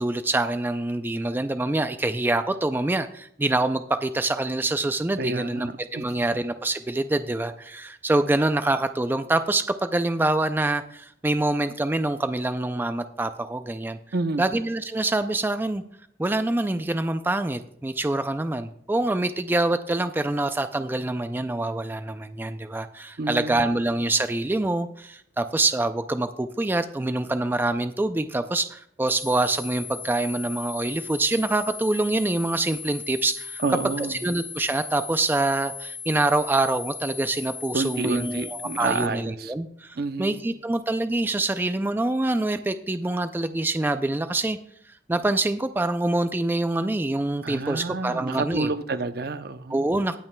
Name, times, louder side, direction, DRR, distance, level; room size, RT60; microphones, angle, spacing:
voice 1, 0.0-14.0 14.4-15.8 16.2-33.6 34.0-44.6 45.1-48.7 49.7-50.2, right 2 dB, 10° right, 0.3 m, -25 dB
voice 2, 5.2-6.0 14.1-14.4 23.2-23.6 33.6-34.1 37.7-39.5 40.0-40.4 47.4-49.9, right 3 dB, 60° right, 0.7 m, -29 dB
sound 1, 29.1-39.1, left 5 dB, 20° left, 0.8 m, -37 dB
19.5 x 8.9 x 2.2 m
head